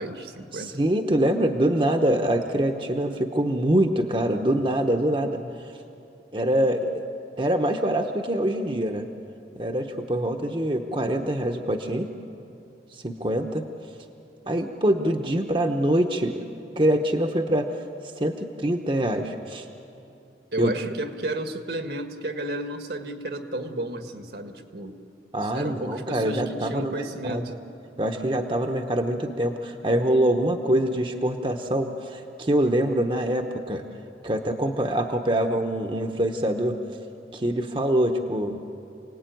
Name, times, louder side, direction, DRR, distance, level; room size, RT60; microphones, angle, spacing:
voice 1, 0.0-0.8 5.4-5.5 20.5-25.0 25.4-27.5, right 1 dB, 70° right, 6 dB, 1.7 m, -32 dB
voice 2, 0.5-5.4 6.3-7.1 7.4-9.1 9.6-12.1 12.9-13.6 14.5-16.4 16.8-17.8 18.2-19.7 20.6-20.8 25.3-27.4 28.0-33.8 34.2-36.8 37.3-38.6, right 1 dB, 30° right, 5 dB, 1.0 m, -24 dB
28.0 x 19.0 x 9.2 m, 2.7 s
head